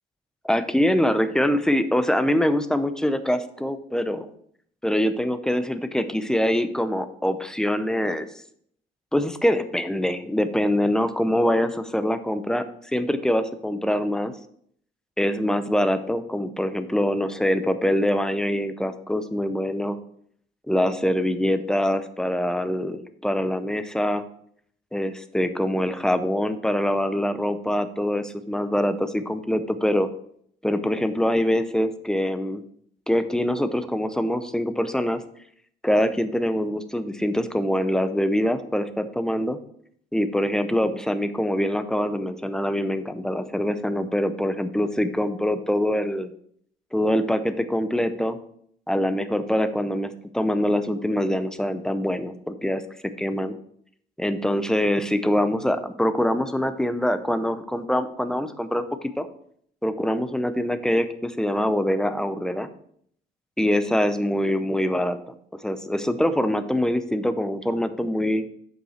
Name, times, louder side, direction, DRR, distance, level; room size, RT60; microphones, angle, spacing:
voice 1, 0.4-4.3 4.8-8.3 9.1-12.6 12.9-14.3 15.2-20.0 20.7-24.2 24.9-30.1 30.6-32.6 33.1-35.2 35.8-39.6 40.1-46.3 46.9-48.4 48.9-52.8 53.2-53.5 54.2-58.8 59.2-59.3 59.8-62.7 63.6-65.3 65.6-68.4, equal, 5° left, 11 dB, 0.6 m, -24 dB
7.9 x 5.4 x 4.3 m, 0.65 s
cardioid pair, 110°, 17 cm